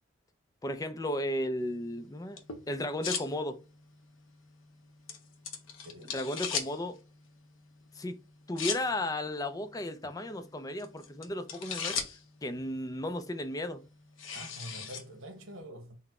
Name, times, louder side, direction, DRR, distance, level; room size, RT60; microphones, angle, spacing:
voice 1, 0.6-2.4 2.7-3.6 6.1-7.0 7.9-8.2 8.5-12.0 12.4-13.8, left 1 dB, 20° left, 0.4 m, -34 dB
sound 1, 1.6-15.6, left 6 dB, 75° left, 0.8 m, -42 dB
voice 2, 5.8-6.1 6.8-6.9 14.3-16.0, equal, 85° right, 1.1 m, -46 dB
4.1 x 2.1 x 4.2 m
head